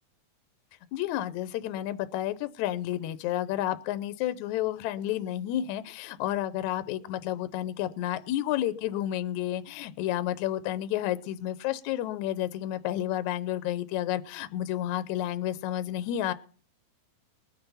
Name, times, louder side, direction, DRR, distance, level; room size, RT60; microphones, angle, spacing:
voice 1, 0.9-16.3, left 12 dB, 75° left, 12 dB, 2.0 m, -31 dB
20.5 x 6.9 x 5.6 m, 0.42 s
omnidirectional pair, 3.6 m